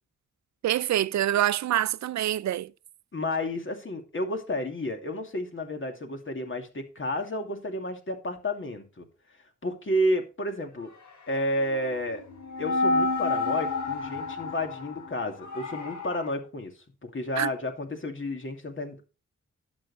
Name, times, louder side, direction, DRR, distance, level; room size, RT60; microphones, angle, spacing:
voice 1, 0.6-2.7 17.4-17.5, right 12 dB, 65° right, 0.5 m, -25 dB
voice 2, 3.1-9.0 9.6-10.9 11.3-12.2 12.6-16.7 17.0-19.0, left 1 dB, 40° left, 2.6 m, -31 dB
sound 1, 11.6-16.3, left 3 dB, 75° left, 4.1 m, -30 dB
11.0 x 6.9 x 4.2 m
cardioid pair, 55°, 30 cm